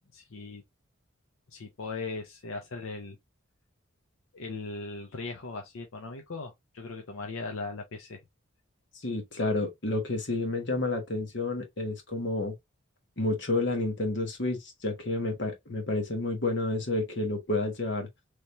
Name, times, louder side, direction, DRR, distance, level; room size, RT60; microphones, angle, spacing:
voice 1, 0.1-0.6 1.5-3.2 4.3-8.2, left 3 dB, 85° left, 0.7 m, -38 dB
voice 2, 9.0-12.5 13.2-18.1, left 2 dB, 55° left, 1.3 m, -30 dB
3.3 x 3.0 x 2.6 m
head